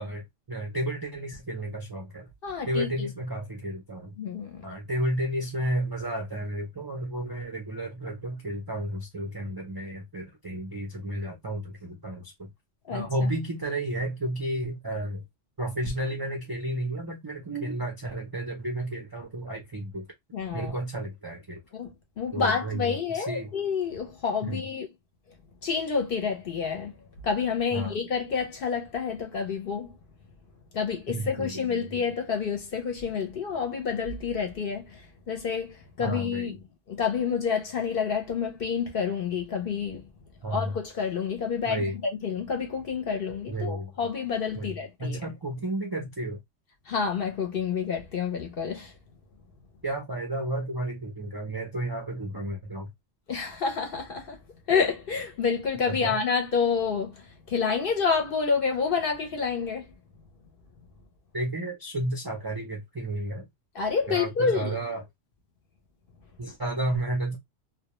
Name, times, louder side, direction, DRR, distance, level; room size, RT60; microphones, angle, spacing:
voice 1, 0.0-2.3 2.7-4.1 4.6-12.5 12.9-15.2 15.6-20.1 20.5-21.6 22.3-23.5 24.4-24.6 27.7-28.0 31.1-31.7 36.0-36.6 40.4-40.8 41.6-42.0 43.5-43.9 44.6-46.4 49.8-52.9 55.9-56.2 61.3-63.5 64.1-65.0 66.4-67.4, right 1 dB, 40° right, 0.3 m, -32 dB
voice 2, 2.4-2.9 4.2-4.6 12.9-13.3 20.3-20.7 21.7-24.9 25.6-26.9 27.2-29.9 30.7-36.6 36.9-40.0 40.5-45.2 46.9-48.9 53.3-54.4 54.7-59.9 63.7-64.7, left 6 dB, 55° left, 0.7 m, -28 dB
2.2 x 2.2 x 2.9 m
omnidirectional pair, 1.3 m